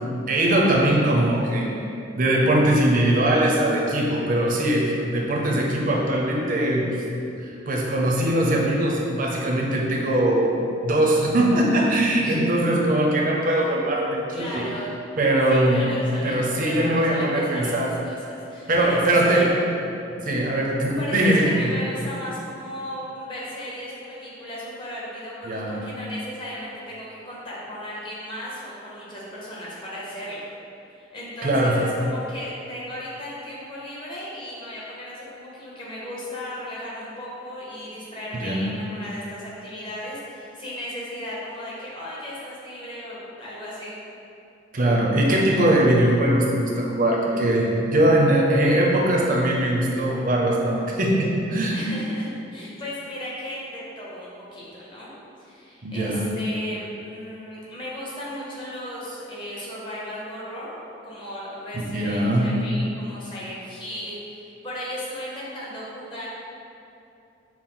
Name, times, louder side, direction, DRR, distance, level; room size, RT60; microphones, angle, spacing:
voice 1, 0.1-1.7 2.2-6.8 7.4-10.5 10.8-14.6 15.2-15.9 16.2-17.9 18.7-19.5 20.2-21.7 25.4-25.8 31.4-31.8 38.3-38.7 44.7-51.8 55.8-56.2 61.9-62.5, right 1 dB, 45° right, -2 dB, 0.6 m, -21 dB
voice 2, 12.2-12.8 14.3-14.9 15.5-19.5 21.0-30.4 30.9-44.0 51.7-55.1 55.4-60.7 61.0-66.3, equal, 25° left, -7 dB, 0.9 m, -36 dB
6.0 x 2.1 x 3.7 m, 2.7 s
head